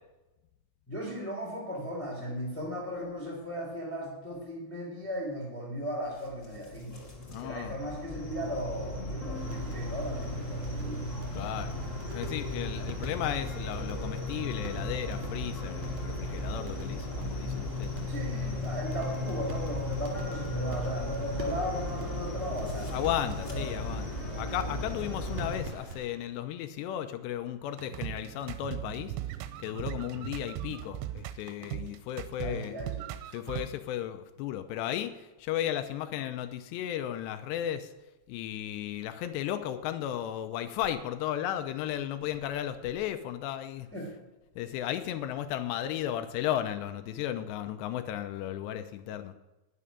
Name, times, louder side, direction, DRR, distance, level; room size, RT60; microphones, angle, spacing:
voice 1, 0.9-7.0 7.4-11.0 11.4-11.5 18.1-22.9 23.4-23.8 29.7-29.9 31.6-31.8 32.4-33.1 43.9-44.1, equal, 5° left, -2 dB, 1.7 m, -37 dB
sound 1, 6.1-25.6, left 1 dB, 45° left, 0.9 m, -36 dB
voice 2, 7.3-7.8 11.3-11.8 12.1-18.1 22.9-29.1 29.6-32.8 33.3-35.1 35.4-37.9 38.3-43.9 44.6-49.3, left 11 dB, 80° left, 9 dB, 2.7 m, -35 dB
sound 2, 9.3-26.1, right 4 dB, 40° right, 3.5 m, -45 dB
Jazzy Short Sample Experimental Surround, 27.8-33.7, right 13 dB, 85° right, 3.0 m, -38 dB
12.5 x 6.7 x 9.9 m, 1.0 s
omnidirectional pair, 5.2 m